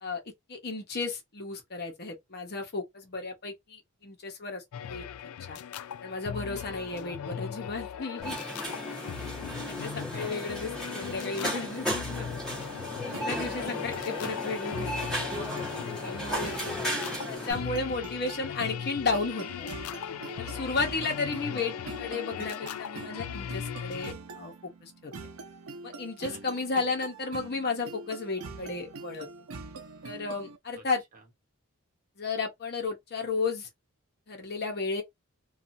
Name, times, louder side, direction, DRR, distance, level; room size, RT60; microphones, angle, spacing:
voice 1, 0.5-5.0 5.5-5.6 6.0-8.4 9.6-12.3 13.0-14.9 15.8-16.5 17.3-19.7 20.3-24.5 24.8-25.1 25.8-29.3 30.0-31.0 32.2-33.7 34.3-35.0, left 4 dB, 50° left, 1.0 m, -33 dB
sound 1, 4.7-24.1, left 8 dB, 80° left, 0.3 m, -38 dB
voice 2, 6.5-7.2 8.9-10.0 12.9-13.8 16.0-17.3 17.7-18.0 20.6-21.0 26.3-26.4 26.7-26.8 30.7-30.8 31.1-31.2, right 2 dB, 40° right, 1.0 m, -53 dB
sound 2, 8.2-17.5, equal, 5° left, 1.5 m, -35 dB
sound 3, 13.1-30.6, right 3 dB, 75° right, 0.6 m, -44 dB
2.8 x 2.4 x 2.6 m
head